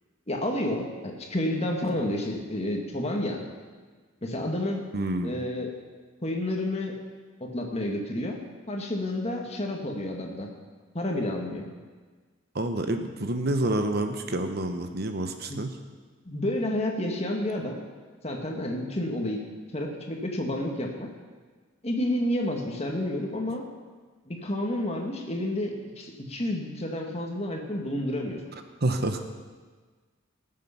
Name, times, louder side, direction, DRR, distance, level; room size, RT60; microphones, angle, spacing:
voice 1, 0.3-3.4 4.2-4.8 5.2-5.7 6.2-7.0 7.4-8.4 8.7-10.5 10.9-11.7 15.5-15.6 16.2-17.8 18.2-19.4 19.7-21.1 21.8-23.6 24.3-28.4, left 1 dB, 30° left, 2 dB, 1.8 m, -30 dB
voice 2, 4.9-5.4 12.5-15.7 28.8-29.2, right 1 dB, 50° right, 6 dB, 1.0 m, -28 dB
19.5 x 7.6 x 5.9 m, 1.4 s
head